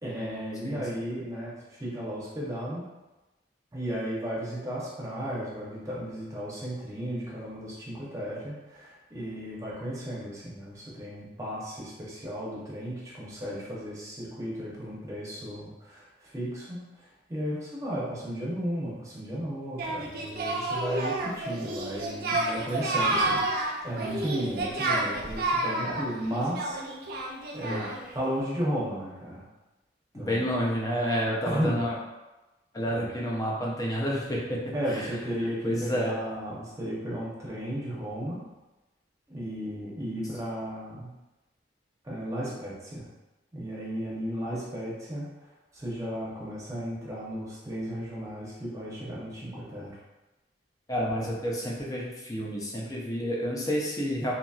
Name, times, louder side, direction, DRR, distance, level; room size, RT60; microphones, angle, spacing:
voice 1, 0.0-2.9 3.7-26.8 27.5-27.8 28.1-29.4 30.2-30.5 31.5-31.8 32.9-33.1 34.7-38.4 39.3-41.1 42.0-43.1 43.5-45.3 45.7-50.0, equal, 20° right, -6 dB, 0.7 m, -34 dB
Singing, 19.8-28.1, right 2 dB, 55° right, 0.4 m, -30 dB
voice 2, 30.1-32.0 32.7-35.1 35.4-36.1 50.9-54.3, equal, 20° left, -4 dB, 0.5 m, -30 dB
2.8 x 2.7 x 2.3 m, 1.1 s
head